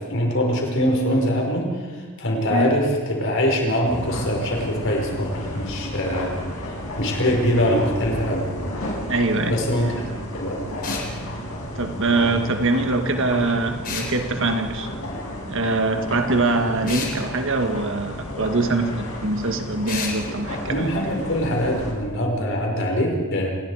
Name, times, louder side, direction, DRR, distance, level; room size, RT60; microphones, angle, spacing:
voice 1, 0.0-8.5 9.5-10.0 10.3-10.6 20.7-23.5, equal, 60° left, 0 dB, 5.2 m, -23 dB
sound 1, 3.8-21.9, left 1 dB, 75° left, 5.8 m, -32 dB
voice 2, 9.0-9.6 11.8-14.9 15.5-20.9, right 2 dB, 60° right, 6 dB, 1.7 m, -23 dB
sound 2, 10.8-11.1 13.8-14.1 16.9-17.2 19.9-20.2, left 5 dB, 40° left, 3.7 m, -30 dB
27.5 x 20.0 x 5.0 m, 1.5 s
head